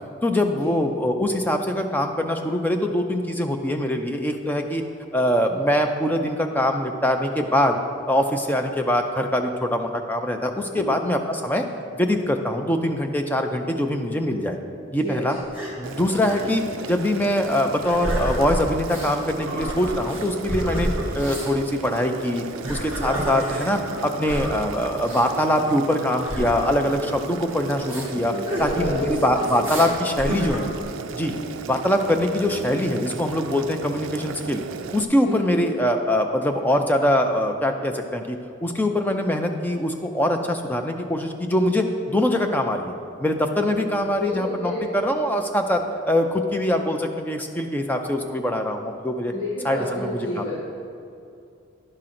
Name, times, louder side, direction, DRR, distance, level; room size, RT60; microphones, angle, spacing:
voice 1, 0.2-4.8 5.1-7.8 8.1-11.6 11.9-14.6 14.9-15.4 15.8-20.9 21.1-28.3 28.6-30.7 31.1-31.3 31.7-34.6 34.9-42.9 43.2-49.3 49.6-50.6, left 1 dB, 10° left, 4 dB, 0.4 m, -23 dB
voice 2, 15.0-15.4 28.1-29.4 31.2-31.6 35.2-35.6 44.2-44.8 49.3-50.6, left 1 dB, 60° left, -9 dB, 1.7 m, -30 dB
sound 1, 15.4-15.7 16.2-16.4 16.8-16.9 17.5-19.1 19.4-21.5 22.4-24.6 25.0-25.2 26.2-27.4 27.9-28.1 28.5-29.1 29.6-29.9 30.2-30.8, equal, 10° right, 1.3 m, -30 dB
Boiling, 15.8-35.0, right 5 dB, 65° right, 0.3 m, -36 dB
10.5 x 3.8 x 5.9 m, 2.5 s
head